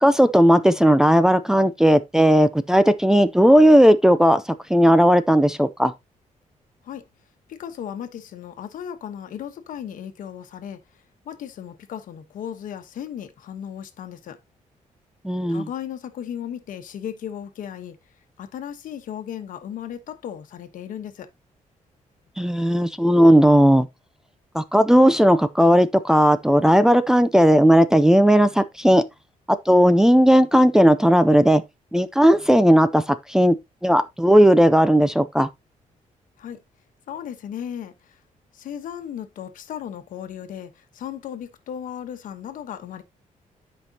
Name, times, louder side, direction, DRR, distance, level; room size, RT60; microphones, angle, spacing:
voice 1, 0.0-4.4 4.7-5.9 15.2-15.7 22.4-23.9 24.5-29.0 29.7-31.6 31.9-33.6 33.8-35.5, equal, 5° right, 0.4 m, -16 dB
voice 2, 7.5-10.8 11.2-14.4 15.5-18.0 18.4-21.3 36.4-36.6 37.1-38.2 38.5-43.0, left 9 dB, 80° left, 1.2 m, -35 dB
11.0 x 5.2 x 2.8 m
wide cardioid pair, 170°, 14 cm